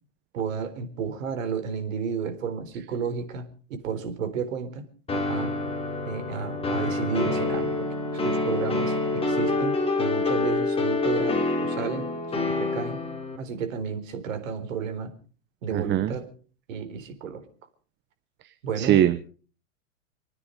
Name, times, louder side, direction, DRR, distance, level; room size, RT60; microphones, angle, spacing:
voice 1, 0.3-3.5 3.8-4.9 5.3-5.5 6.1-12.1 12.5-13.0 13.4-15.1 15.6-16.3 16.7-17.4 18.6-19.0, right 6 dB, 70° right, 10 dB, 4.2 m, -32 dB
sound 1, 5.1-13.4, left 2 dB, 15° left, 4.5 m, -27 dB
voice 2, 15.7-16.1 18.8-19.3, right 12 dB, 25° right, 12 dB, 1.0 m, -22 dB
29.0 x 9.7 x 5.2 m, 0.41 s
hypercardioid pair, 120°, 40 cm